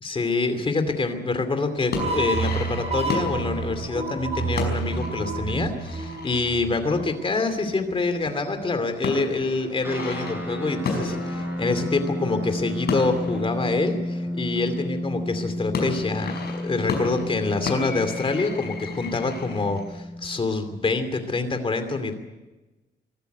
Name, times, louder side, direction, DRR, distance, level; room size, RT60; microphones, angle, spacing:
voice 1, 0.0-22.1, left 3 dB, 30° left, 8 dB, 2.7 m, -26 dB
sound 1, 1.8-8.0 8.3-14.9 15.5-20.0, left 4 dB, 55° left, 5.3 m, -34 dB
sound 2, 1.9-7.2, right 3 dB, 35° right, 4.8 m, -29 dB
sound 3, 9.8-20.5, left 1 dB, 10° right, 5.6 m, -32 dB
23.0 x 13.5 x 9.3 m, 1.1 s
cardioid pair, 140°, 19 cm